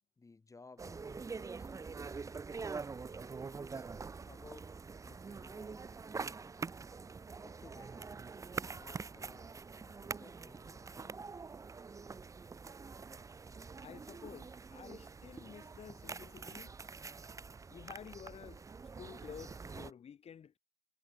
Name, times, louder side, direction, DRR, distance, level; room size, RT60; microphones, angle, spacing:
voice 1, 0.2-2.2 3.6-4.0 4.3-4.8 5.0-5.9 7.4-8.1 8.7-11.4, left 3 dB, 20° left, 1.5 m, -59 dB
sound 1, 0.8-19.9, right 4 dB, 20° right, 0.5 m, -45 dB
voice 2, 13.8-16.8 17.7-18.6 19.0-20.6, left 8 dB, 40° left, 1.0 m, -51 dB
cardioid pair, 110°, 17 cm